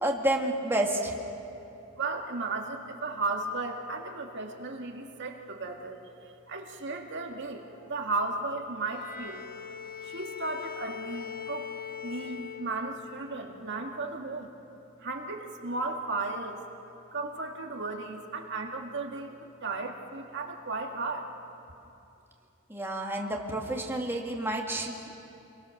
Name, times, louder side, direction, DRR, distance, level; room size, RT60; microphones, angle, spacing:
voice 1, 0.0-1.2 22.7-25.1, right 1 dB, 10° right, 0 dB, 2.1 m, -29 dB
voice 2, 1.9-6.0 6.2-9.5 10.0-11.7 12.0-14.5 15.0-16.6 17.1-19.3 19.6-21.3, right 3 dB, 55° right, 2 dB, 2.0 m, -35 dB
Bowed string instrument, 8.8-13.3, left 8 dB, 40° left, 2.0 m, -41 dB
29.0 x 22.5 x 6.6 m, 2.8 s
head